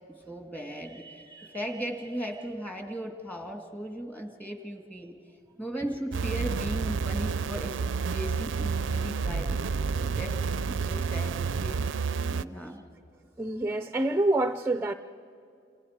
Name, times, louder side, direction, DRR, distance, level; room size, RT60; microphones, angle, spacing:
voice 1, 0.1-5.2 5.6-7.8 8.1-10.4 10.7-11.9 12.3-12.8, right 1 dB, 10° left, 2.1 m, -37 dB
sound 1, 6.1-12.4, right 5 dB, 85° right, 0.5 m, -30 dB
voice 2, 13.4-14.9, right 2 dB, 15° right, 0.5 m, -27 dB
29.0 x 28.5 x 5.1 m
head